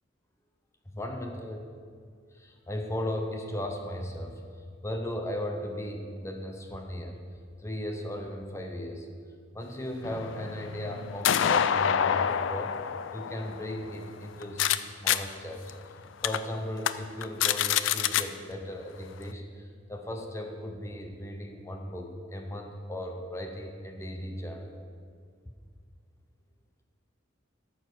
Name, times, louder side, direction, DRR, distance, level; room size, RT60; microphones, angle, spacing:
voice 1, 0.9-1.6 2.4-4.3 4.8-7.2 7.6-9.1 9.5-12.8 13.1-15.6 16.2-24.7, left 1 dB, 15° left, 3 dB, 0.7 m, -36 dB
sound 1, 10.0-14.8 15.1-15.2 15.7-15.8 16.2-16.4 16.8-16.9 17.2-18.2, left 9 dB, 70° left, 0.4 m, -27 dB
13.5 x 4.7 x 6.1 m, 2.2 s
head